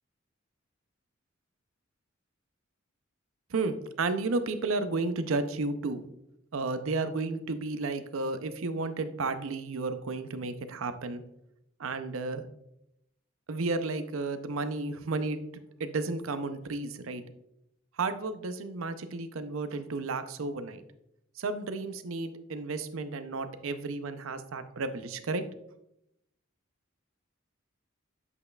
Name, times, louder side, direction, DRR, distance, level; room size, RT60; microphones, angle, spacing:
voice 1, 3.5-6.0 6.5-11.2 11.8-12.4 13.5-17.2 18.0-20.8 21.4-25.4, right 3 dB, 80° right, 10 dB, 0.5 m, -32 dB
8.1 x 5.4 x 2.3 m, 0.81 s
head